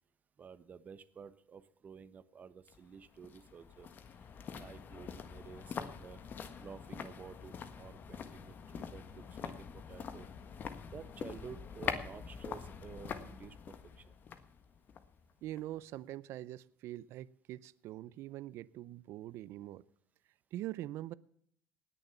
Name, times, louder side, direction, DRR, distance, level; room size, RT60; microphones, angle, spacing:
voice 1, 0.4-3.9 4.5-6.2 6.6-10.3 10.9-14.1, right 6 dB, 35° right, 15 dB, 1.0 m, -52 dB
sound 1, 2.7-15.8 16.1-16.2, left 6 dB, 40° left, 1.5 m, -45 dB
voice 2, 15.4-19.8 20.5-21.1, right 14 dB, 65° right, 20 dB, 0.6 m, -43 dB
18.5 x 7.1 x 7.0 m, 0.67 s
cardioid pair, 115°, 5 cm